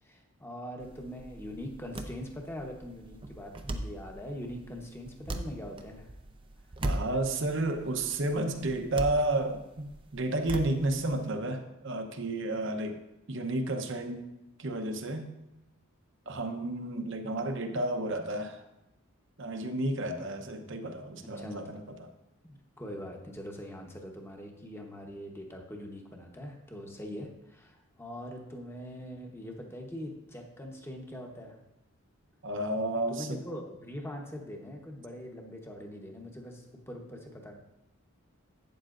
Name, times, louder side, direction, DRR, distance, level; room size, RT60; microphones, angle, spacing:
voice 1, 0.0-6.1 21.2-21.8 22.4-31.6 33.1-37.5, equal, 10° left, 2 dB, 1.0 m, -42 dB
sound 1, 0.8-11.3, right 1 dB, 25° right, 0.5 m, -40 dB
voice 2, 6.8-9.9 10.1-13.0 13.3-14.3 14.6-15.3 16.3-18.6 19.4-21.8 32.4-33.4, right 2 dB, 60° right, 6 dB, 0.8 m, -31 dB
12.0 x 8.6 x 2.5 m, 0.91 s
head